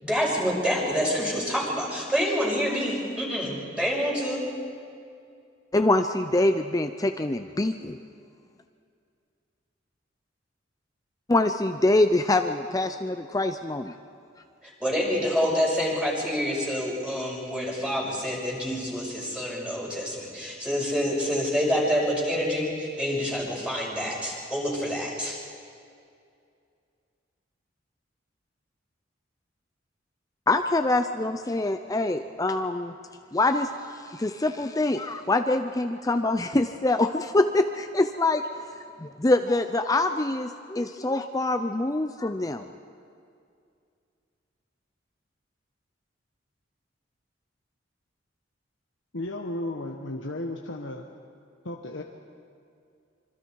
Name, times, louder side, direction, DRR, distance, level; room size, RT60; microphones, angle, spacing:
voice 1, 0.0-4.5 14.6-25.4, equal, 5° right, -4 dB, 5.9 m, -27 dB
voice 2, 5.7-8.0 11.3-13.9 30.5-32.9 33.3-33.7 34.1-38.4 39.0-42.7, left 2 dB, 20° left, 7 dB, 0.6 m, -24 dB
voice 3, 49.1-51.0 51.6-52.0, left 1 dB, 80° left, 1 dB, 1.4 m, -34 dB
26.5 x 25.5 x 4.7 m, 2.4 s
head